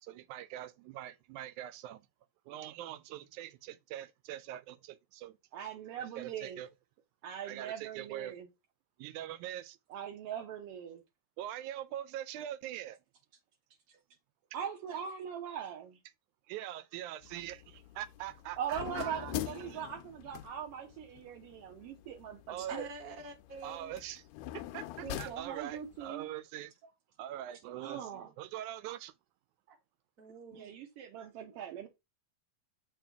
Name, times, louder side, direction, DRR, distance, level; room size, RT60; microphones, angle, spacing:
voice 1, 0.0-2.1 2.5-5.4 6.2-6.7 7.4-8.4 9.0-9.8 11.4-13.0 16.5-19.8 22.5-22.9 23.6-24.2 24.5-26.7 27.2-29.1, right 12 dB, 85° right, 2.0 m, -43 dB
voice 2, 5.5-6.6 7.2-8.5 9.9-11.0 13.9-14.0 14.5-16.0 18.6-22.8 25.0-26.3 27.8-28.3 30.5-31.9, right 8 dB, 70° right, 1.5 m, -41 dB
sound 1, 17.2-26.1, left 13 dB, 80° left, 1.7 m, -45 dB
voice 3, 22.6-23.9 26.8-26.9 28.2-28.3 29.7-29.8 30.2-30.7 31.5-31.6, right 2 dB, 40° right, 1.4 m, -47 dB
7.7 x 4.6 x 3.4 m
omnidirectional pair, 3.4 m